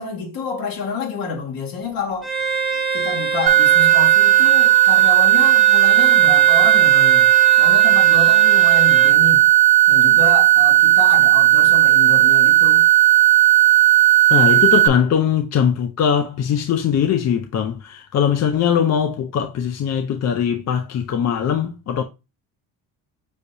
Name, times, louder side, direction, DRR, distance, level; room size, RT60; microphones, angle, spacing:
voice 1, 0.0-2.3 2.9-9.4 9.9-12.9, left 4 dB, 60° left, 1.7 m, -28 dB
Bowed string instrument, 2.2-9.1, right 4 dB, ahead, 1.1 m, -26 dB
sound 1, 3.5-14.9, right 14 dB, 70° right, 0.6 m, -13 dB
voice 2, 14.3-22.0, left 8 dB, 45° left, 0.5 m, -20 dB
6.3 x 2.8 x 2.6 m
cardioid pair, 155°, 40 cm